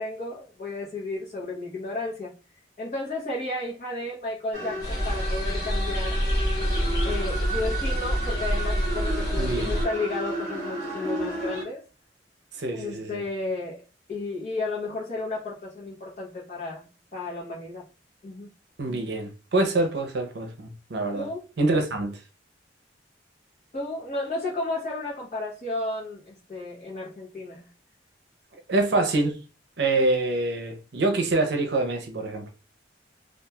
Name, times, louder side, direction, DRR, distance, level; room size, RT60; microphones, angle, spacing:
voice 1, 0.0-2.3 2.8-6.2 7.0-11.8 12.7-13.8 14.1-17.8 18.2-18.5 21.1-21.4 23.7-27.7 29.0-29.1, left 2 dB, 40° left, 0.8 m, -33 dB
sound 1, 4.5-11.6, right 1 dB, 45° right, 1.1 m, -33 dB
sound 2, 4.8-9.8, equal, 20° left, 1.1 m, -27 dB
voice 2, 9.4-9.8 12.5-13.2 18.8-21.3 21.6-22.2 28.5-29.4 29.8-32.5, right 2 dB, 70° right, 0.6 m, -26 dB
3.0 x 2.3 x 2.2 m
head